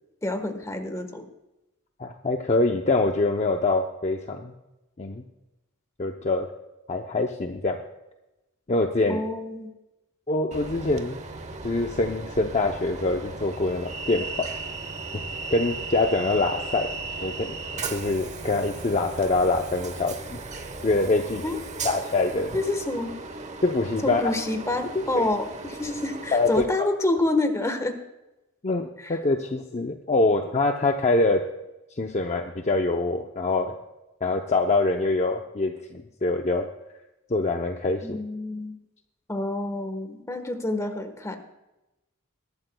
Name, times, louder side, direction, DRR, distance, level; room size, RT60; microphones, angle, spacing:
voice 1, 0.2-1.3 9.1-9.7 21.4-21.6 22.5-23.2 24.0-28.0 29.0-29.1 38.0-38.8 39.3-41.4, left 2 dB, 15° left, 6 dB, 1.3 m, -28 dB
voice 2, 2.0-4.5 5.0-5.2 6.0-6.5 6.9-7.8 8.7-9.2 10.3-11.2 11.6-14.5 15.5-16.9 17.2-17.6 17.9-20.4 20.8-21.4 21.8-22.5 23.6-24.2 25.0-25.2 26.3-26.6 28.6-31.4 32.0-33.7 34.2-36.7 37.3-38.2, left 2 dB, 30° left, 3 dB, 0.7 m, -24 dB
Train, 10.5-26.7, right 3 dB, 35° right, 1.0 m, -36 dB
22.0 x 12.0 x 2.3 m, 0.98 s
head